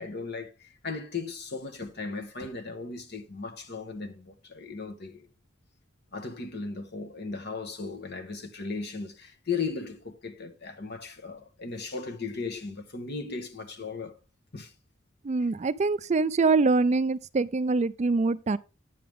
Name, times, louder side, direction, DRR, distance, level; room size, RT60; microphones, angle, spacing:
voice 1, 0.0-5.3 6.1-14.2 14.5-14.7, left 4 dB, 60° left, 1.3 m, -36 dB
voice 2, 15.2-18.6, right 3 dB, 35° right, 0.4 m, -24 dB
9.4 x 6.9 x 3.5 m
head